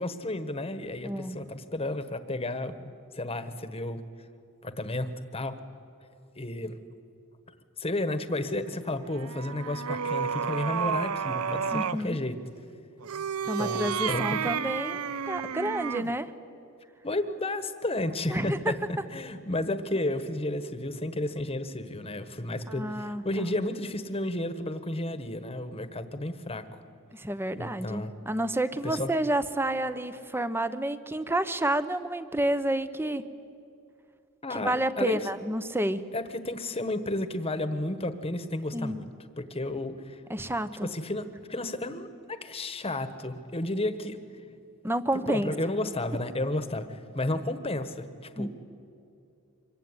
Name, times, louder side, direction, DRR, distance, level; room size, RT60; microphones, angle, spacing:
voice 1, 0.0-2.7 3.1-4.0 4.6-5.6 6.3-6.8 7.8-12.4 13.6-14.3 17.0-18.7 19.1-26.6 27.6-28.1 28.8-29.1 34.4-35.2 36.1-39.1 39.4-40.2 40.7-44.2 45.3-48.5, left 1 dB, 25° left, 11 dB, 1.4 m, -32 dB
voice 2, 1.0-1.4 11.7-12.2 13.5-16.3 18.3-18.7 22.7-23.2 27.1-33.2 34.5-36.0 38.7-39.0 40.3-40.9 44.8-45.5 48.4-48.5, right 1 dB, 10° right, 12 dB, 0.9 m, -29 dB
sound 1, 9.1-12.1 13.0-16.2, right 7 dB, 80° right, 0.6 m, -31 dB
25.5 x 23.0 x 9.8 m, 2.6 s
head